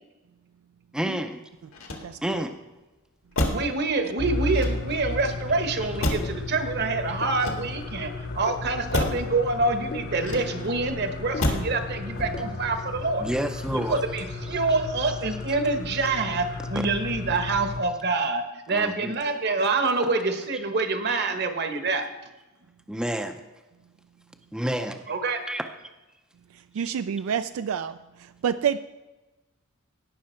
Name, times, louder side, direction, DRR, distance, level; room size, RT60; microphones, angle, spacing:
voice 1, 0.9-1.4 2.2-2.6 13.2-14.0 18.7-19.1 21.1-21.3 22.9-23.4 24.5-25.0 25.5-25.6 26.8-26.9, equal, 5° right, 6 dB, 0.5 m, -29 dB
Motor vehicle (road), 1.7-2.5 3.3-3.8 4.5-5.1 6.0-6.5 7.2-8.0 8.9-9.3 10.2-10.8 11.4-11.8 12.1-12.6, left 1 dB, 70° left, 1.8 m, -29 dB
voice 2, 2.0-2.4 26.7-28.0 28.4-28.8, right 8 dB, 70° right, 11 dB, 0.3 m, -28 dB
voice 3, 3.5-13.2 13.7-22.1 25.1-25.4, right 3 dB, 50° right, 7 dB, 1.1 m, -26 dB
sound 1, 4.2-17.8, left 2 dB, 50° left, 1.0 m, -34 dB
17.0 x 5.8 x 4.4 m, 1.1 s
head